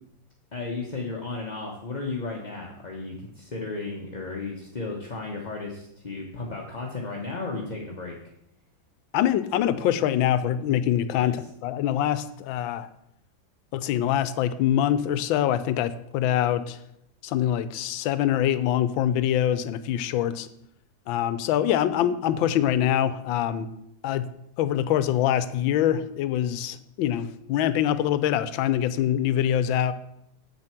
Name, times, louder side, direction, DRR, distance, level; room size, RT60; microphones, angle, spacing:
voice 1, 0.5-8.2 11.1-11.3, left 3 dB, 30° left, -1 dB, 1.0 m, -34 dB
voice 2, 9.1-12.9 13.7-16.8 17.2-20.5 21.1-23.7 24.0-24.3 24.6-29.9, left 11 dB, 80° left, 14 dB, 1.4 m, -24 dB
8.2 x 7.7 x 5.9 m, 0.78 s
omnidirectional pair, 2.1 m